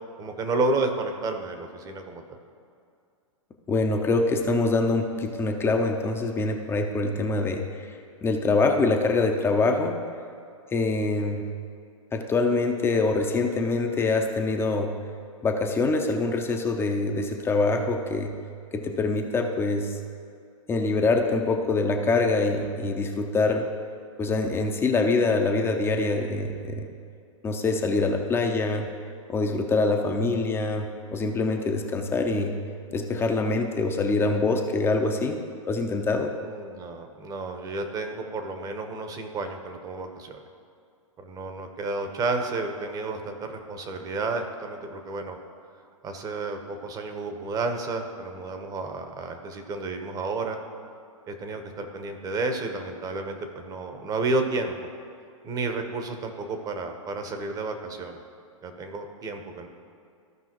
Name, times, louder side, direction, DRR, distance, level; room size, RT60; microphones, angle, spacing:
voice 1, 0.2-2.2 36.4-40.4 41.2-45.4 46.0-50.6 51.3-54.7 55.4-58.2 58.6-59.7, right 3 dB, 20° right, 5 dB, 1.0 m, -31 dB
voice 2, 3.7-7.6 8.2-10.0 10.7-11.4 12.1-14.9 15.4-18.3 18.7-19.9 20.7-23.6 24.2-26.9 27.4-28.9 29.3-32.5 32.9-35.4 35.7-36.3, left 3 dB, 15° left, 3 dB, 0.7 m, -24 dB
15.5 x 5.4 x 3.0 m, 2.4 s
hypercardioid pair, 120°, 17 cm